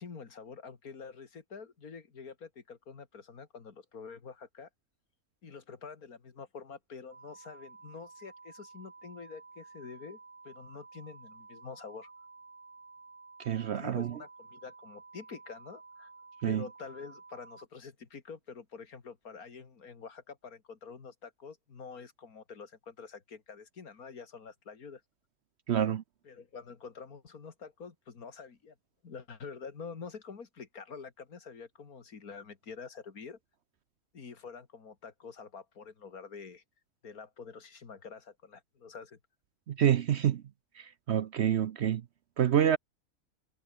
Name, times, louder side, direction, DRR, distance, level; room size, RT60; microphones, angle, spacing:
voice 1, 0.0-4.7 5.4-10.2 10.4-12.1 13.7-16.1 16.5-25.0 26.2-28.7 29.0-33.4 34.1-36.6 37.0-39.2, left 5 dB, 80° left, 2.5 m, -47 dB
sound 1, 7.1-17.7, right 4 dB, 85° right, 3.7 m, -53 dB
voice 2, 13.4-14.1 16.4-16.6 25.7-26.0 39.7-40.4 40.8-42.0 42.4-42.8, right 9 dB, 60° right, 0.8 m, -27 dB
omnidirectional pair, 1.6 m